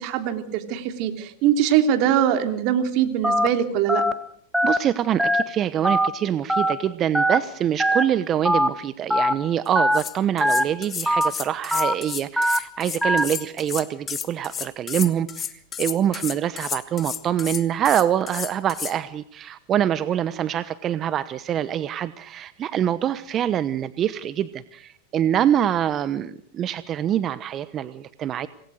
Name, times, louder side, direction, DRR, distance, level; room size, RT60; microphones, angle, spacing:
voice 1, 0.0-4.0, right 10 dB, 50° right, 7 dB, 3.3 m, -22 dB
Telephone, 3.2-3.5 3.9-4.1 4.5-4.8 5.2-5.4 5.8-6.1 6.5-6.7 7.1-7.4 7.8-8.0 8.4-8.7 9.1-9.3 9.7-10.0 10.4-10.6 11.0-11.3 11.7-11.9 12.4-12.6 13.0-13.2, equal, ahead, 1.8 m, -20 dB
voice 2, 4.6-28.5, right 10 dB, 35° right, 15 dB, 1.0 m, -25 dB
sound 1, 9.7-9.8 9.9-19.0, left 8 dB, 25° left, 1.7 m, -32 dB
27.0 x 20.0 x 6.6 m, 0.63 s
hypercardioid pair, 95°, 0 cm